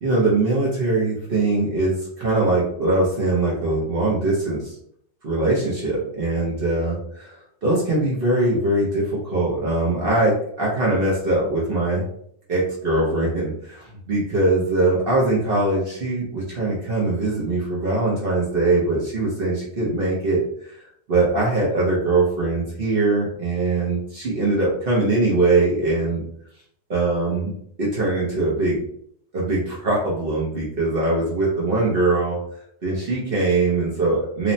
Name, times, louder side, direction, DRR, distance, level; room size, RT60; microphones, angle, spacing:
voice 1, 0.0-4.8 5.2-7.4 7.6-12.0 12.5-20.8 21.1-26.2 26.9-27.5 27.8-28.8 29.3-32.4 32.8-34.5, right 2 dB, 50° right, -5 dB, 0.7 m, -22 dB
3.1 x 2.0 x 2.6 m, 0.68 s
omnidirectional pair, 1.6 m